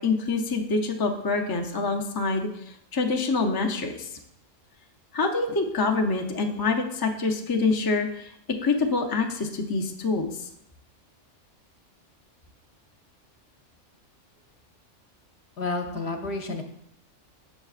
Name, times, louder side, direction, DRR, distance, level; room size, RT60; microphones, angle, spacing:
voice 1, 0.0-2.5 2.9-4.1 5.1-8.3 8.6-10.5, left 3 dB, 30° left, 2 dB, 0.4 m, -26 dB
voice 2, 15.6-16.6, left 3 dB, 60° left, 4 dB, 1.0 m, -30 dB
7.9 x 6.7 x 2.4 m, 0.76 s
omnidirectional pair, 1.3 m